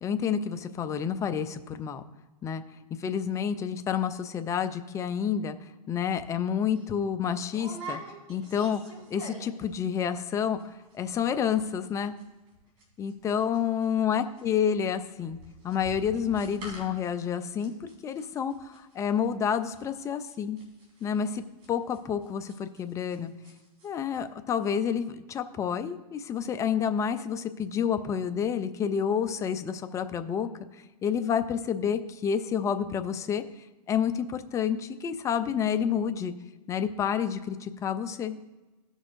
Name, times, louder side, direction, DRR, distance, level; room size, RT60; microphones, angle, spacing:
voice 1, 0.0-2.0 2.4-2.6 3.0-8.0 8.3-8.8 9.1-12.2 13.0-15.4 15.6-20.6 21.0-21.4 21.7-23.3 23.8-30.5 31.0-33.4 33.9-36.3 36.7-38.4, left 8 dB, 15° left, 9 dB, 0.4 m, -29 dB
sound 1, 6.1-6.3 6.7-6.9 7.5-9.7 9.9-10.3 10.6-10.7 10.9-11.3 11.5-23.2 23.4-23.9 24.1-24.2, right 2 dB, 60° right, 3.2 m, -45 dB
15.5 x 6.3 x 2.5 m, 1.1 s
hypercardioid pair, 130°, 20 cm